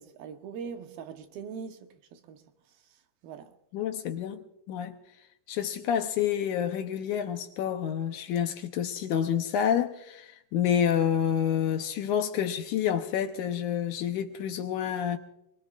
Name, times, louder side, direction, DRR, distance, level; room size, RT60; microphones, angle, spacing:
voice 1, 0.0-3.5, right 6 dB, 90° right, 3.0 m, -43 dB
voice 2, 3.7-5.0 5.5-15.2, left 9 dB, 75° left, 2.1 m, -28 dB
23.0 x 22.5 x 2.5 m
omnidirectional pair, 4.1 m